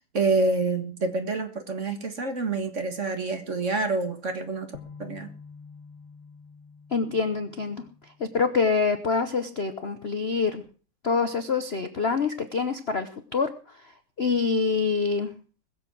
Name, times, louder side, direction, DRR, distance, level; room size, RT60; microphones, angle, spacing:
voice 1, 0.0-4.7 5.0-5.3, right 3 dB, 40° right, 8 dB, 1.7 m, -27 dB
sound 1, 4.7-8.8, left 5 dB, 80° left, 2.6 m, -48 dB
voice 2, 6.9-7.8 8.2-10.6 11.0-13.5 14.2-15.3, left 4 dB, 45° left, 9 dB, 0.8 m, -25 dB
21.0 x 7.9 x 6.1 m, 0.39 s
omnidirectional pair, 2.3 m